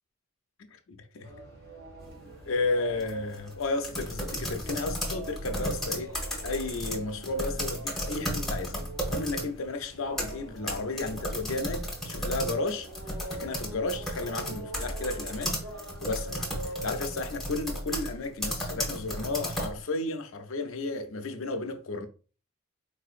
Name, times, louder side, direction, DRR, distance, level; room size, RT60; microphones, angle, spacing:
voice 1, 0.7-1.3 2.5-8.8 9.1-12.9 13.3-15.6 16.0-22.1, left 3 dB, 70° left, 0.5 m, -33 dB
sound 1, 1.2-16.9, right 1 dB, 80° right, 1.8 m, -45 dB
sound 2, 2.0-2.3 2.9-9.5 9.9-19.8, equal, ahead, 0.9 m, -34 dB
4.2 x 2.7 x 2.4 m
head